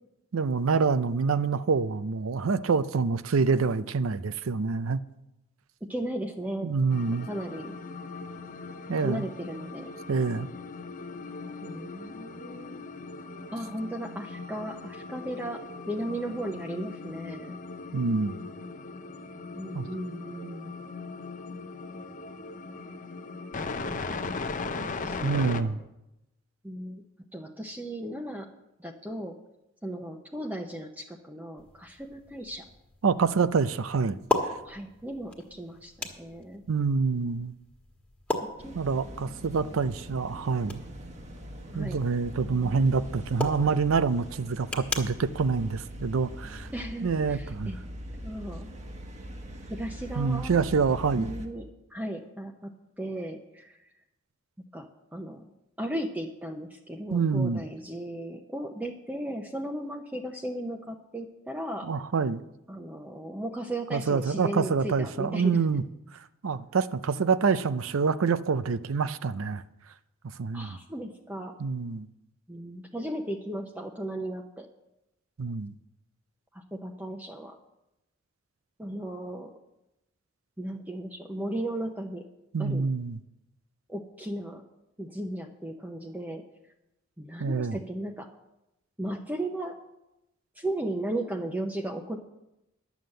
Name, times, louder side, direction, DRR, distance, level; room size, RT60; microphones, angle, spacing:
voice 1, 0.3-5.0 6.6-7.3 8.9-9.2 10.1-10.5 17.9-18.3 19.7-19.8 25.2-25.8 33.0-34.2 36.7-37.5 38.7-40.8 41.7-46.7 47.0-47.7 50.2-51.3 57.1-57.6 61.9-62.4 63.9-65.8 66.4-69.6 70.4-70.8 71.6-72.1 75.4-75.7 82.5-83.2 87.4-87.8, right 5 dB, 85° right, 0.5 m, -26 dB
voice 2, 5.9-6.7 7.3-7.7 9.0-9.9 11.6-12.8 13.5-15.6 15.9-17.6 19.5-20.7 24.7-25.9 26.6-27.0 27.3-28.5 28.8-29.4 29.8-32.6 34.6-36.6 38.4-38.7 41.7-42.0 46.7-47.8 48.2-48.7 49.7-50.6 51.2-52.7 53.0-53.8 54.7-54.9 55.1-55.5 55.8-61.9 62.7-65.6 70.5-71.5 72.5-74.7 76.5-77.6 78.8-79.5 80.6-82.2 82.6-82.8 83.9-84.6 85.0-86.4 87.2-88.3 89.0-89.8 90.6-92.2, right 1 dB, 10° right, 0.8 m, -36 dB
sound 1, 6.9-25.6, left 4 dB, 40° left, 0.6 m, -39 dB
sound 2, 31.6-46.8, left 1 dB, 5° left, 1.5 m, -39 dB
sound 3, 38.6-51.5, equal, 35° right, 1.2 m, -42 dB
11.0 x 7.2 x 7.7 m
head